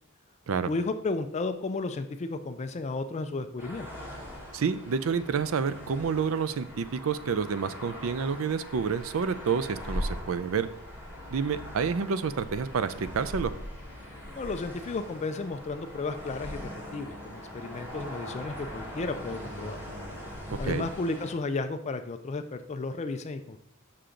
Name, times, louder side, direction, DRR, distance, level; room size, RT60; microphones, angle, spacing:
voice 1, 0.7-3.9 14.4-19.8 20.6-23.6, left 3 dB, 30° left, 8 dB, 0.4 m, -33 dB
sound 1, 3.6-21.3, equal, 10° right, 1.4 m, -41 dB
voice 2, 4.5-10.7 11.3-13.5 20.6-20.9, right 6 dB, 70° right, 13 dB, 0.4 m, -29 dB
6.6 x 5.7 x 3.8 m, 0.72 s
head